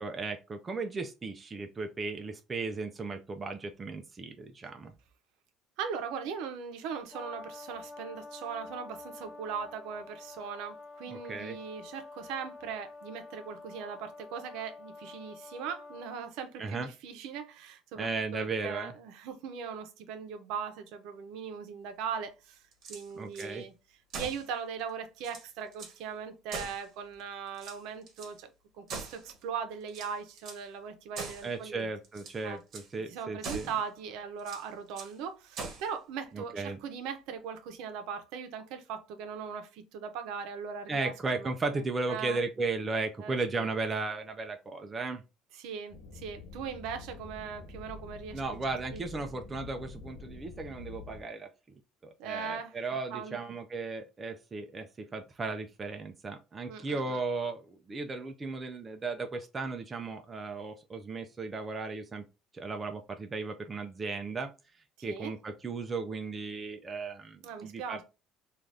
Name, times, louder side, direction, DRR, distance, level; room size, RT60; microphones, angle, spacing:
voice 1, 0.0-4.9 11.1-11.6 16.6-16.9 17.9-18.9 23.1-23.6 31.4-33.7 36.3-36.8 40.9-45.2 48.3-51.5 52.0-62.2 62.5-64.5 65.0-68.0, right 3 dB, 20° right, 0.3 m, -36 dB
voice 2, 5.8-22.6 22.9-23.7 24.1-31.9 32.4-32.6 33.1-41.8 42.1-42.4 43.2-43.6 45.6-48.6 48.9-49.0 52.2-52.7 53.1-53.4 56.7-57.2 65.0-65.3 67.4-68.0, right 6 dB, 75° right, 0.6 m, -39 dB
Brass instrument, 7.1-16.1, left 3 dB, 15° left, 0.8 m, -48 dB
sound 1, 22.7-23.5 24.1-24.5 24.9-25.0 25.2-26.0 26.5-27.2 27.5-28.3 28.9-29.5 29.9-30.7 31.2-31.5 32.0-32.4 32.7-32.9 33.4-33.8 34.4-35.2 35.6-35.9, right 4 dB, 50° right, 0.9 m, -42 dB
sound 2, 45.9-51.2, left 3 dB, 75° left, 0.6 m, -47 dB
3.2 x 2.3 x 2.5 m
cardioid pair, 155°, 0 cm